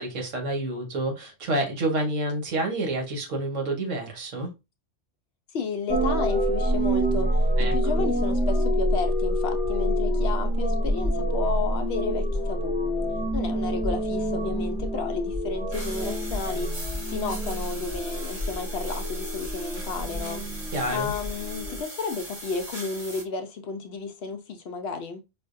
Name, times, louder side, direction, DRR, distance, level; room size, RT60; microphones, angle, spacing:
voice 1, 0.0-4.5 7.6-7.7 20.7-21.1, right 2 dB, 75° right, 1.5 m, -28 dB
voice 2, 5.5-12.8 13.3-25.2, left 4 dB, 65° left, 0.7 m, -32 dB
sound 1, 5.9-21.8, equal, 10° right, 0.5 m, -27 dB
sound 2, 15.7-23.2, right 2 dB, 30° right, 1.1 m, -40 dB
4.9 x 2.1 x 2.5 m
omnidirectional pair, 1.3 m